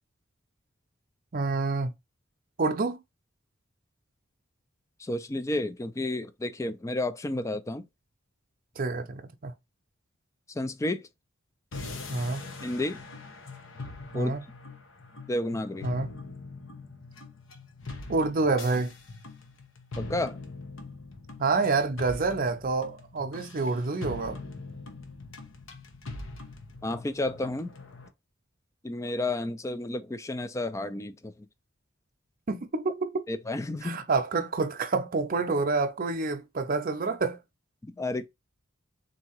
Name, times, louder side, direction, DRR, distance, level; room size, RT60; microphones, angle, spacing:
voice 1, 1.3-1.9 2.6-3.0 8.8-9.5 12.1-12.4 14.1-14.4 15.8-16.1 18.1-18.9 21.4-24.4 32.5-33.2 33.8-37.4, right 3 dB, 45° right, 0.6 m, -28 dB
voice 2, 5.0-7.8 10.5-11.0 12.6-13.0 14.1-14.3 15.3-15.9 20.0-20.4 26.8-27.7 28.8-31.3 33.3-34.0 37.8-38.3, left 2 dB, 15° left, 0.3 m, -31 dB
sound 1, 11.7-28.1, left 3 dB, 70° left, 0.9 m, -42 dB
3.8 x 2.8 x 4.5 m
head